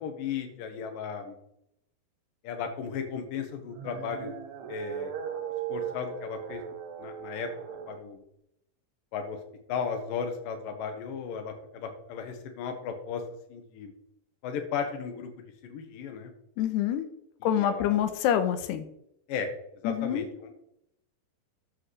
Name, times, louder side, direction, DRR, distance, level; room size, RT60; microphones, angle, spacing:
voice 1, 0.0-1.4 2.4-4.3 4.7-5.1 5.7-6.6 7.0-7.5 7.9-8.2 9.1-9.4 9.7-13.2 13.5-13.9 14.4-16.3 17.6-18.0 19.3-19.5 19.8-20.6, left 6 dB, 65° left, 5 dB, 2.5 m, -35 dB
sound 1, 3.6-8.0, right 9 dB, 75° right, 2.9 m, -38 dB
voice 2, 16.6-17.1 17.4-18.9 19.8-20.3, left 10 dB, 80° left, 9 dB, 2.8 m, -26 dB
13.0 x 7.8 x 3.3 m, 0.78 s
omnidirectional pair, 5.0 m